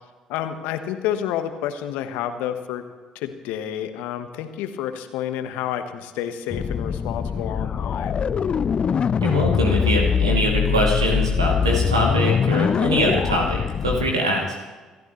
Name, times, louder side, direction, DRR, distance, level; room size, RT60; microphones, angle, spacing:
voice 1, 0.3-2.8 3.1-8.2, left 10 dB, 65° left, 8 dB, 1.3 m, -29 dB
sound 1, 6.5-14.1, left 7 dB, 40° left, 0.4 m, -22 dB
voice 2, 9.2-14.5, equal, 85° right, -1 dB, 2.5 m, -23 dB
27.5 x 13.5 x 3.2 m, 1.3 s
figure-of-eight pair, 50°, 3 cm